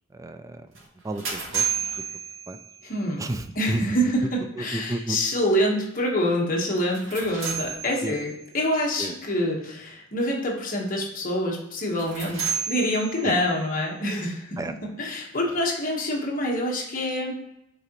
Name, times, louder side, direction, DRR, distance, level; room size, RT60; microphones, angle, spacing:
voice 1, 0.1-0.7 1.0-1.7 2.5-2.6 3.2-4.0 4.5-5.2 8.0-8.2 9.0-9.2 13.2-13.4 14.6-14.7 15.5-15.6, right 2 dB, 15° right, 9 dB, 0.3 m, -31 dB
sound 1, 0.7-3.0 6.8-8.4 11.8-13.6, right 6 dB, 85° right, 2.0 m, -32 dB
voice 2, 2.8-3.2 3.6-14.4 15.0-17.3, equal, 40° left, -2 dB, 1.3 m, -26 dB
8.1 x 3.9 x 3.0 m, 0.81 s
head